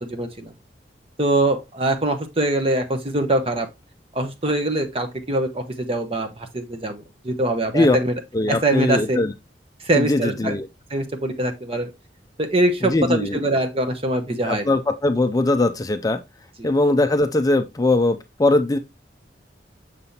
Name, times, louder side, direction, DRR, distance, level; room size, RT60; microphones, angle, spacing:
voice 1, 0.0-0.5 1.2-3.7 4.1-8.2 8.5-9.2 9.8-10.6 10.9-11.9 12.4-14.7 16.6-16.7, right 1 dB, 30° right, 0.9 m, -23 dB
voice 2, 8.3-9.3 9.9-10.7 12.8-13.4 14.4-16.2 16.6-18.8, left 2 dB, 20° left, 0.4 m, -20 dB
6.6 x 5.5 x 2.8 m
head